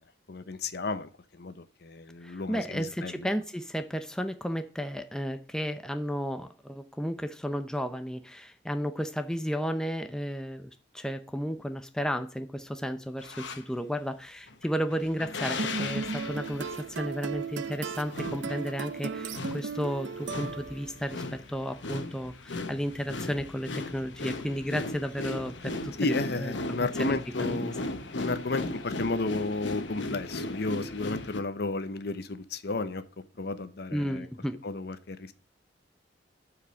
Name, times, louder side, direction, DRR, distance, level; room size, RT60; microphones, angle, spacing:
voice 1, 0.3-1.1 1.4-3.3 26.0-27.8 28.1-33.0 33.4-34.3 34.6-35.3, left 3 dB, 60° left, 12 dB, 0.7 m, -33 dB
voice 2, 2.2-27.1 27.4-27.7 33.9-34.6, equal, 5° left, 8 dB, 0.6 m, -33 dB
sound 1, 13.2-13.6 14.5-31.4, left 2 dB, 85° left, 1.1 m, -37 dB
sound 2, 15.6-21.0, right 5 dB, 85° right, 0.5 m, -36 dB
8.4 x 5.0 x 7.4 m, 0.37 s
head